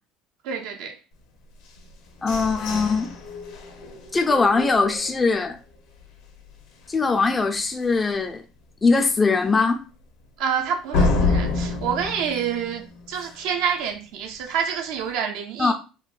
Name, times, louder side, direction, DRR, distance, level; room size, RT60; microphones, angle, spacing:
voice 1, 0.4-0.9 10.4-15.7, right 7 dB, 75° right, 0.6 m, -27 dB
sound 1, 1.6-5.5 6.0-6.1 6.5-6.9 7.2-7.3 7.8-7.9 10.9-13.6, left 3 dB, 70° left, 0.7 m, -28 dB
voice 2, 2.2-3.1 4.1-5.6 6.9-8.4 8.8-9.8 15.6-15.7, left 4 dB, 20° left, 0.3 m, -21 dB
3.7 x 2.2 x 2.4 m
cardioid pair, 120°, 0 cm